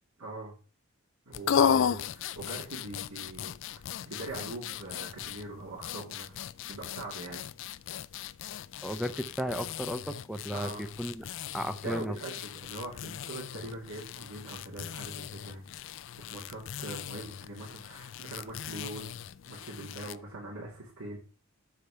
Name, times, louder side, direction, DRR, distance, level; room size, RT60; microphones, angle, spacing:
voice 1, 0.2-0.5 1.3-3.5 4.0-6.4 6.7-7.4 10.5-10.8 11.8-15.6 16.2-19.1 19.5-21.2, right 2 dB, 85° right, -5 dB, 2.4 m, -42 dB
sound 1, 1.3-20.2, left 8 dB, 60° left, 0.3 m, -36 dB
voice 2, 8.8-11.2 11.5-12.2, equal, ahead, 9 dB, 0.5 m, -34 dB
6.6 x 4.9 x 5.6 m, 0.37 s
head